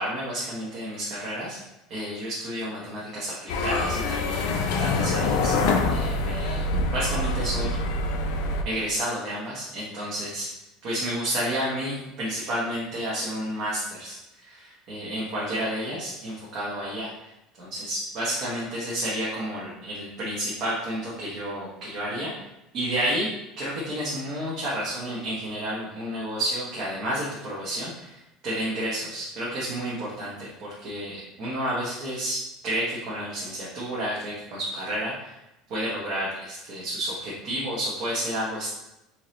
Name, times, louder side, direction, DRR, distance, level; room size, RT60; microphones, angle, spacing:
voice 1, 0.0-1.6 1.9-5.5 5.9-6.7 6.9-7.8 8.6-10.5 10.8-17.3 17.6-22.3 22.7-23.3 23.6-32.4 32.6-35.4 35.7-38.7, right 1 dB, 40° right, -7 dB, 1.0 m, -31 dB
sound 1, 3.5-8.6, left 2 dB, 70° left, 0.4 m, -25 dB
4.5 x 2.8 x 3.1 m, 0.91 s
cardioid pair, 180°, 0 cm